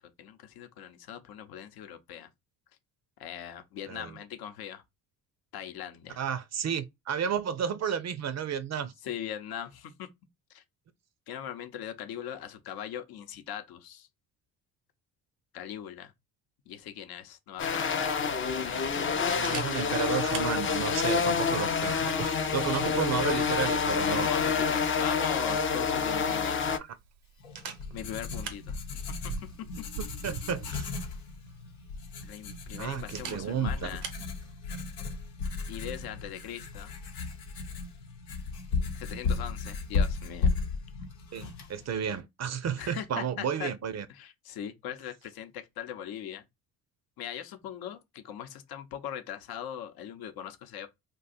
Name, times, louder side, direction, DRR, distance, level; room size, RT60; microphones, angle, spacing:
voice 1, 0.2-2.3 3.2-4.8 5.5-6.2 9.0-10.1 10.5-10.6 11.3-14.1 15.5-16.1 16.7-18.1 18.5-19.5 24.1-26.7 27.9-29.3 32.2-34.1 35.7-36.9 38.9-40.5 42.8-43.7 44.1-46.4 47.2-50.9, left 9 dB, 60° left, 0.8 m, -40 dB
voice 2, 3.9-4.2 6.2-8.9 19.2-24.3 26.7-27.0 30.2-30.9 32.8-33.9 41.3-44.1, right 7 dB, 40° right, 0.5 m, -32 dB
sound 1, 17.6-26.8, left 5 dB, 30° left, 0.5 m, -28 dB
Camera, 17.6-34.3, right 6 dB, 90° right, 0.8 m, -47 dB
Writing, 27.4-42.2, left 4 dB, 90° left, 0.8 m, -35 dB
2.6 x 2.3 x 4.1 m
supercardioid pair, 65°, 41 cm